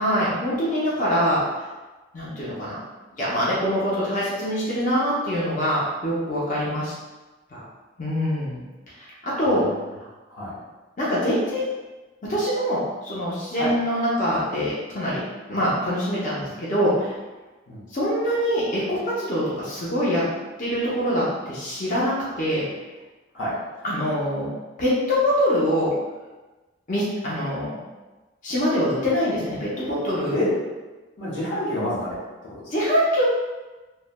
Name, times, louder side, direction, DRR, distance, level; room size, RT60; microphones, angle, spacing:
voice 1, 0.0-1.4 2.1-2.8 3.2-6.9 7.5-7.6 8.0-8.6 9.0-9.6 11.0-11.7 12.2-15.2 15.5-17.2 17.9-20.2 20.6-22.6 23.8-24.5 24.8-25.9 26.9-27.8 28.4-30.4 32.7-33.2, equal, 40° left, -7 dB, 0.6 m, -24 dB
voice 2, 31.2-32.2 32.5-32.7, left 1 dB, 70° left, -7 dB, 0.9 m, -28 dB
3.1 x 2.1 x 2.2 m, 1.2 s
head